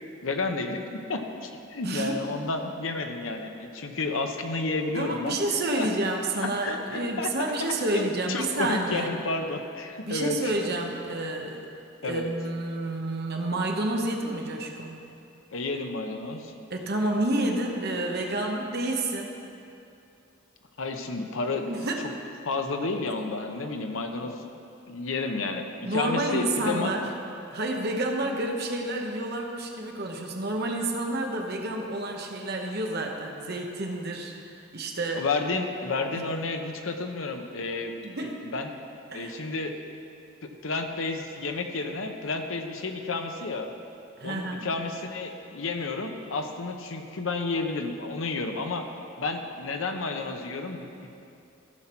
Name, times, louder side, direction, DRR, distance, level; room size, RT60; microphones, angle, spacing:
voice 1, 0.2-5.4 5.8-5.9 6.4-7.3 7.9-10.5 11.1-11.2 12.0-12.3 15.5-16.5 20.8-21.7 22.5-24.4 24.9-27.1 35.1-37.9 38.4-38.7 39.1-39.7 40.4-43.7 44.2-48.9 49.2-51.1, left 3 dB, 75° left, 5 dB, 0.8 m, -31 dB
voice 2, 1.8-2.2 4.9-9.1 10.0-11.6 12.0-15.1 16.7-19.3 21.7-22.1 24.2-24.3 25.8-27.1 27.5-35.2 36.1-36.3 38.0-38.4 39.1-39.3 44.2-44.7, right 2 dB, 50° right, 1 dB, 1.1 m, -29 dB
15.0 x 5.9 x 4.5 m, 2.6 s
head